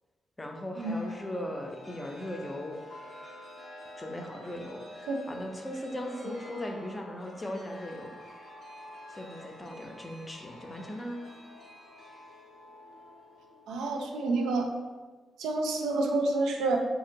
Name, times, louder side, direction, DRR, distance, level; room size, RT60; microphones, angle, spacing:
voice 1, 0.4-2.8 4.0-8.1 9.1-11.3, left 1 dB, 25° left, 2 dB, 0.5 m, -38 dB
Chime, 0.8-15.0, left 1 dB, 75° left, 0.8 m, -49 dB
voice 2, 13.7-14.7 15.4-16.8, right 3 dB, 90° right, 1 dB, 0.3 m, -28 dB
2.8 x 2.7 x 2.6 m, 1.4 s
supercardioid pair, 60°, 0 cm